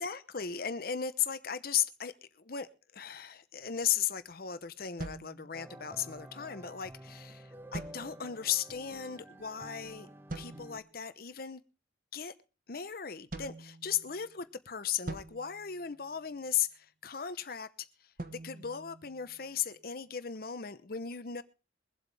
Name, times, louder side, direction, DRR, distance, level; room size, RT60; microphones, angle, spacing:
voice 1, 0.0-2.7 2.9-7.4 7.7-10.1 10.3-11.6 12.1-12.3 12.7-17.7 18.0-21.4, left 8 dB, 55° left, 0.8 m, -36 dB
sound 1, 5.0-6.1 7.7-8.5 10.3-11.0 13.3-14.4 15.1-16.5 18.2-19.7, right 2 dB, 50° right, 1.3 m, -45 dB
sound 2, 5.5-10.8, right 1 dB, 10° right, 0.9 m, -50 dB
23.0 x 8.0 x 3.4 m
head